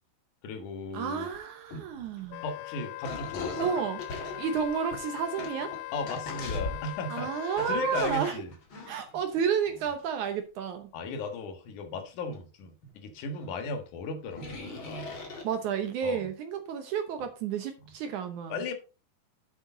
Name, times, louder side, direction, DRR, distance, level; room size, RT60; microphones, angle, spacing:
voice 1, 0.4-1.3 2.4-3.7 5.9-7.3 7.7-8.5 10.9-15.1 16.0-16.3 18.5-18.7, left 3 dB, 55° left, 2.7 m, -36 dB
voice 2, 0.9-2.4 3.6-5.7 7.1-8.4 8.9-10.9 15.4-18.6, right 7 dB, 75° right, 1.8 m, -31 dB
sound 1, 1.3-1.4 1.7-2.4 3.0-7.0 7.6-9.4 9.8-10.0 12.3-12.4 12.8-12.9 13.4-13.5 14.3-15.9, left 3 dB, 35° left, 2.3 m, -40 dB
Wind instrument woodwind instrument, 2.3-8.4, left 20 dB, 85° left, 2.1 m, -40 dB
9.4 x 7.9 x 3.9 m
omnidirectional pair, 4.7 m